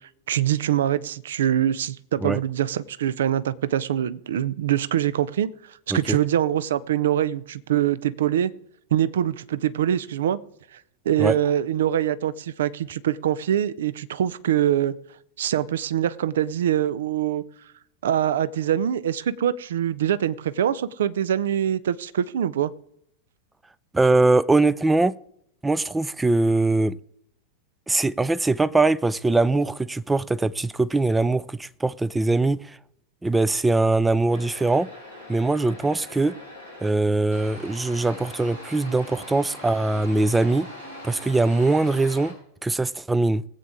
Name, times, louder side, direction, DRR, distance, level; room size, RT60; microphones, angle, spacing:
voice 1, 0.3-5.5 5.9-8.5 8.9-10.4 11.1-14.9 15.4-17.4 18.0-22.7, right 10 dB, 60° right, 0.5 m, -24 dB
voice 2, 23.9-25.2 25.6-27.0 27.9-32.8 33.2-34.9 35.3-36.4 36.8-40.7 41.0-42.3 42.6-43.4, right 2 dB, 10° right, 0.4 m, -22 dB
sound 1, 34.3-36.9 37.3-42.3, left 1 dB, 85° right, 4.2 m, -41 dB
19.5 x 8.3 x 3.7 m
figure-of-eight pair, 90°, 0 cm